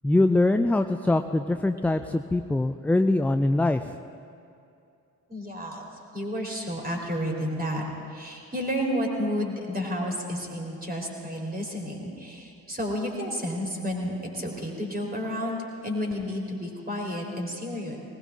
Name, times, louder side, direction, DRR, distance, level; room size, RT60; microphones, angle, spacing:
voice 1, 0.0-3.9, left 2 dB, 5° left, 7 dB, 0.3 m, -23 dB
voice 2, 5.3-5.9 6.1-7.8 8.1-18.0, equal, 20° right, 0 dB, 3.9 m, -31 dB
19.5 x 18.5 x 3.7 m, 2.6 s
figure-of-eight pair, 45°, 46 cm